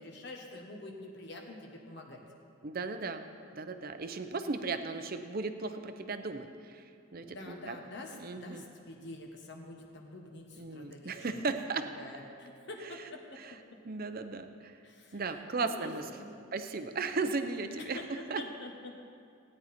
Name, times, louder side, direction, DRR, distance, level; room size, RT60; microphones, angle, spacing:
voice 1, 0.0-2.2 7.1-11.4 11.9-13.4 14.8-16.4 17.8-19.0, left 2 dB, 55° left, 1 dB, 1.3 m, -46 dB
voice 2, 2.6-3.2 3.5-6.8 7.1-7.8 8.2-8.6 10.6-11.8 13.4-13.5 13.8-14.7 15.1-16.0 16.5-18.0 18.3-18.4, right 4 dB, 45° right, 8 dB, 0.7 m, -36 dB
17.0 x 9.6 x 4.3 m, 2.4 s
head